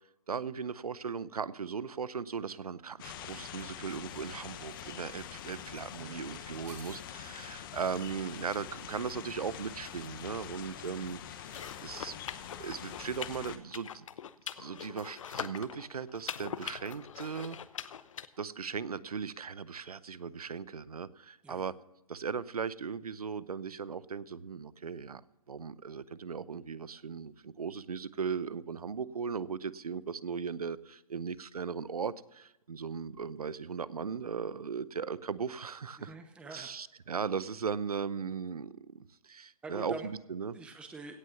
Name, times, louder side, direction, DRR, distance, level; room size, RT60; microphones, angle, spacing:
voice 1, 0.3-11.5 11.8-12.2 12.6-14.1 14.5-17.6 18.4-21.7 22.1-25.2 25.5-36.1 36.4-40.6, right 6 dB, 90° right, 19 dB, 0.7 m, -38 dB
sound 1, 3.0-13.6, left 10 dB, 35° left, 1.1 m, -45 dB
voice 2, 6.0-6.4 21.4-21.6 36.0-36.7 39.6-40.1 40.5-41.1, right 3 dB, 5° right, 6 dB, 0.8 m, -45 dB
sound 2, 6.6-7.0 8.5-8.8 11.2-11.9 13.5-13.6 13.8-13.9 14.2-14.3 14.8-15.2 15.5-15.6, right 9 dB, 30° right, 2.1 m, -58 dB
sound 3, 11.4-18.3, left 8 dB, 60° left, 0.8 m, -43 dB
17.0 x 6.4 x 7.1 m, 0.95 s
hypercardioid pair, 145°, 19 cm